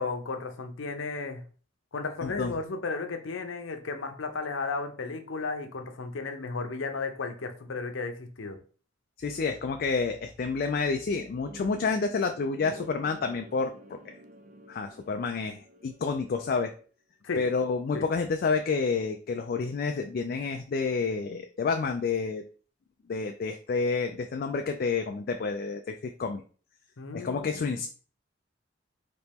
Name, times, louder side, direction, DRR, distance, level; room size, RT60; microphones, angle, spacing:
voice 1, 0.0-1.4 1.9-8.6 17.2-17.4 17.9-18.1 27.0-27.8, left 4 dB, 90° left, 6 dB, 0.7 m, -34 dB
voice 2, 2.2-2.5 9.2-13.7 14.0-14.1 14.7-16.7 17.4-22.4 23.1-26.4 27.1-27.9, left 4 dB, 50° left, 5 dB, 0.3 m, -29 dB
sound 1, 11.5-16.6, right 1 dB, 40° right, 0.4 m, -50 dB
4.2 x 2.9 x 3.5 m, 0.40 s
head